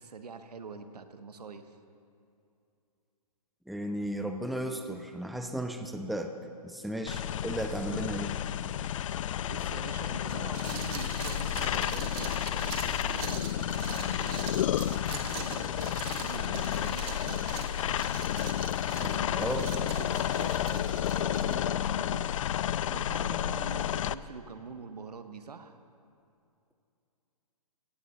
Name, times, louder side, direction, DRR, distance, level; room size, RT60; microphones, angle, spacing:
voice 1, 0.0-1.8 9.4-14.6 15.4-17.4 19.0-22.3 22.9-25.8, right 5 dB, 85° right, 9 dB, 1.1 m, -45 dB
voice 2, 3.7-6.3 6.6-8.4 19.4-19.6, right 1 dB, ahead, 6 dB, 0.6 m, -34 dB
sound 1, 7.1-24.1, left 11 dB, 55° left, 0.4 m, -31 dB
sound 2, 8.7-14.9, left 2 dB, 20° left, 4.1 m, -55 dB
sound 3, 10.3-21.6, right 8 dB, 40° right, 1.4 m, -43 dB
16.5 x 15.0 x 4.0 m, 2.6 s
hypercardioid pair, 130°, 20 cm